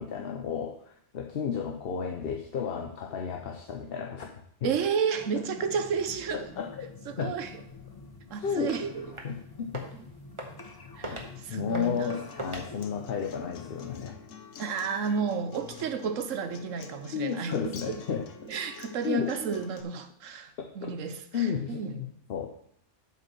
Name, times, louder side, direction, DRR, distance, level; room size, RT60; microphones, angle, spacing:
voice 1, 0.0-4.8 6.3-6.9 7.2-7.4 8.4-8.7 9.2-9.8 11.0-14.1 17.1-18.3 19.0-19.3 20.6-20.9 21.3-22.5, left 7 dB, 55° left, 0.9 m, -33 dB
voice 2, 4.6-6.5 7.1-7.5 8.3-9.1 9.9-10.0 11.0-12.2 14.6-18.0 18.4-21.9, right 6 dB, 90° right, 1.2 m, -32 dB
sound 1, 5.1-14.1, left 3 dB, 25° left, 0.6 m, -47 dB
sound 2, 9.1-9.4 9.6-10.0 10.4-10.7 11.0-11.3 11.7-12.0 12.4-12.7, right 1 dB, 25° right, 1.3 m, -39 dB
Acoustic guitar, 11.8-19.8, left 6 dB, 85° left, 1.1 m, -47 dB
7.9 x 5.3 x 6.0 m
omnidirectional pair, 1.3 m